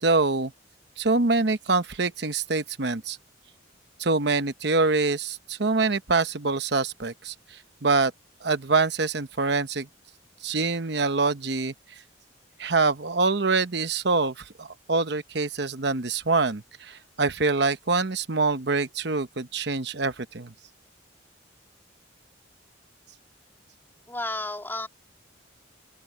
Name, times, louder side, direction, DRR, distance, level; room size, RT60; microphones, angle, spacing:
voice 1, 0.0-0.5 1.0-3.2 4.0-8.1 8.4-9.9 10.4-11.7 12.6-20.5, right 3 dB, 60° right, 1.0 m, -25 dB
voice 2, 24.1-24.9, left 2 dB, 10° left, 3.2 m, -32 dB
open air
head